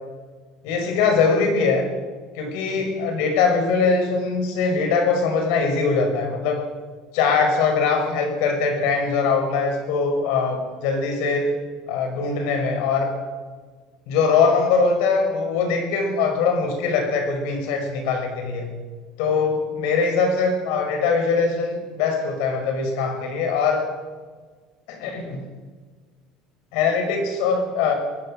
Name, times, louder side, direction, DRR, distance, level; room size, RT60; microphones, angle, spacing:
voice 1, 0.6-1.9 2.4-6.7 7.1-11.6 11.9-13.1 14.1-18.7 19.2-23.9 24.9-25.4 26.7-27.9, left 4 dB, 70° left, 5 dB, 5.6 m, -22 dB
24.0 x 18.0 x 6.5 m, 1.5 s
cardioid pair, 180°, 0 cm